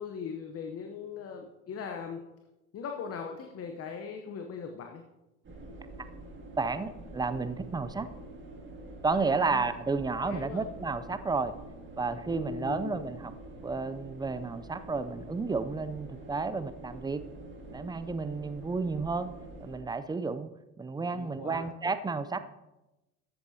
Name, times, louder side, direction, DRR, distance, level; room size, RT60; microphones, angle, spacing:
voice 1, 0.0-2.3 2.7-5.1 9.2-9.7 10.2-10.7 12.3-13.0 21.0-21.7, left 6 dB, 40° left, 4 dB, 0.9 m, -40 dB
sound 1, 5.4-19.8, right 1 dB, 30° right, 2.2 m, -46 dB
voice 2, 6.6-8.1 9.0-11.5 12.0-13.3 13.6-17.2 17.7-19.3 19.6-20.5 20.8-22.4, right 4 dB, 10° right, 12 dB, 0.5 m, -32 dB
13.0 x 7.8 x 2.8 m, 1.0 s
hypercardioid pair, 75°, 37 cm